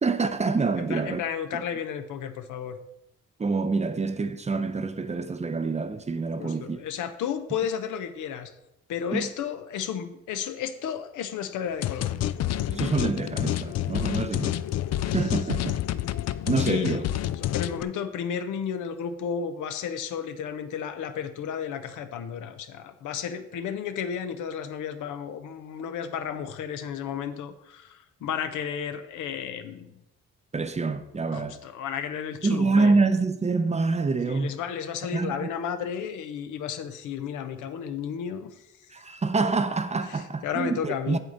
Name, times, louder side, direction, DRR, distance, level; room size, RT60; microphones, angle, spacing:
voice 1, 0.0-1.2 1.5-1.6 3.4-6.8 9.1-9.3 12.7-14.6 15.1-15.8 16.5-17.0 30.5-31.6 32.4-34.5 35.1-35.5 38.9-41.2, right 4 dB, 20° right, 0.6 m, -26 dB
voice 2, 0.8-2.8 6.4-8.5 8.9-12.1 14.2-14.5 15.0-15.1 16.6-17.0 17.3-29.9 31.3-33.0 34.3-38.5 40.1-41.2, left 8 dB, 80° left, 0.9 m, -33 dB
sound 1, 11.8-17.8, left 12 dB, 60° left, 0.4 m, -28 dB
8.0 x 7.5 x 4.0 m
cardioid pair, 90°, 30 cm